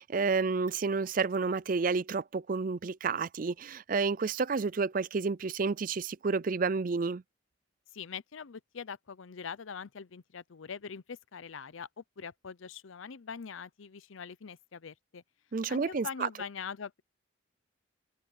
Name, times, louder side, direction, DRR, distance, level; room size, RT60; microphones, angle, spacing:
voice 1, 0.0-7.2 15.5-16.3, right 4 dB, 45° right, 0.4 m, -30 dB
voice 2, 7.9-15.2 15.7-17.0, left 6 dB, 85° left, 0.6 m, -43 dB
head